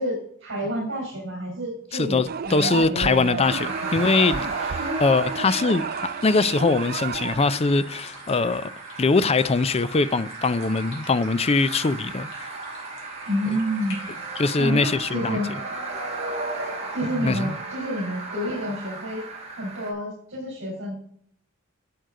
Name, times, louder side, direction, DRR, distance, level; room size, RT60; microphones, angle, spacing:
voice 1, 0.0-3.9 4.8-5.8 13.3-14.0 14.6-15.5 16.9-19.3 19.6-20.9, equal, 60° right, 4.4 m, -30 dB
voice 2, 1.9-5.8 6.2-8.7 9.0-12.3 14.4-15.4 17.1-17.5, left 3 dB, 30° left, 0.4 m, -22 dB
sound 1, 2.3-7.6, right 6 dB, 45° right, 0.4 m, -32 dB
sound 2, 3.4-19.9, right 3 dB, 30° right, 2.8 m, -35 dB
sound 3, 5.1-14.4, left 2 dB, 65° left, 3.9 m, -49 dB
11.5 x 8.0 x 3.8 m
head